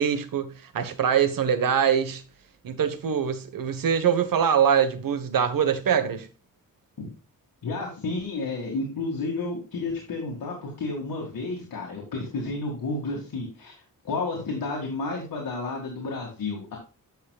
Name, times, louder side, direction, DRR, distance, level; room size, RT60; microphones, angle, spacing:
voice 1, 0.0-2.2 2.6-6.3, right 8 dB, 75° right, 1.3 m, -23 dB
voice 2, 7.6-13.7 14.0-16.8, left 3 dB, 75° left, 2.2 m, -31 dB
10.5 x 6.2 x 2.4 m
cardioid pair, 95°, 34 cm